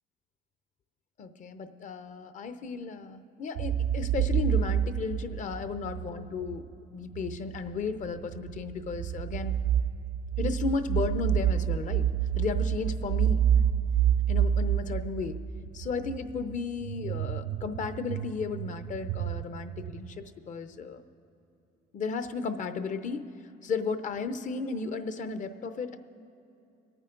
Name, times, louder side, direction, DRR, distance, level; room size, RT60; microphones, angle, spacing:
voice 1, 1.2-6.6 6.9-9.6 10.4-12.1 12.4-13.4 14.3-15.4 15.7-21.0 21.9-23.3 23.6-26.0, left 4 dB, 50° left, 10 dB, 0.7 m, -34 dB
sound 1, 3.6-6.6 7.1-20.2, right 9 dB, 80° right, 0.5 m, -28 dB
23.5 x 9.0 x 3.9 m, 2.8 s
cardioid pair, 110°, 17 cm